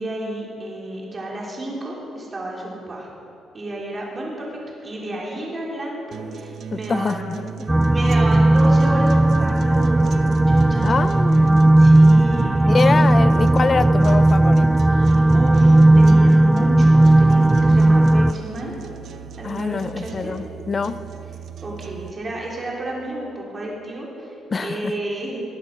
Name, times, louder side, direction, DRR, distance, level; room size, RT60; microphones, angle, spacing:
voice 1, 0.0-3.1 3.5-7.4 7.9-11.1 11.8-13.2 14.9-18.7 19.4-20.3 21.6-25.4, right 1 dB, 30° right, -3 dB, 4.3 m, -31 dB
sound 1, 6.1-22.1, right 6 dB, 65° right, 0.9 m, -36 dB
voice 2, 6.7-7.4 10.8-11.5 12.7-14.7 19.4-21.0 24.5-24.9, left 4 dB, 35° left, 13 dB, 0.6 m, -24 dB
sound 2, 7.7-18.3, right 1 dB, 10° right, 0.3 m, -15 dB
20.0 x 9.8 x 6.2 m, 2.8 s
cardioid pair, 90°, 0 cm